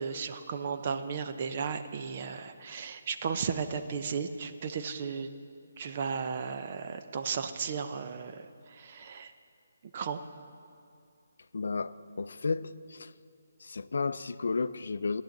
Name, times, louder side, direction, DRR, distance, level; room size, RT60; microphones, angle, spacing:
voice 1, 0.0-5.3 5.8-9.3 9.9-10.2, right 6 dB, 35° right, 9 dB, 0.5 m, -35 dB
voice 2, 11.5-13.1 13.6-15.2, left 4 dB, 70° left, 15 dB, 0.4 m, -33 dB
18.0 x 10.5 x 3.9 m, 2.4 s
hypercardioid pair, 165°, 0 cm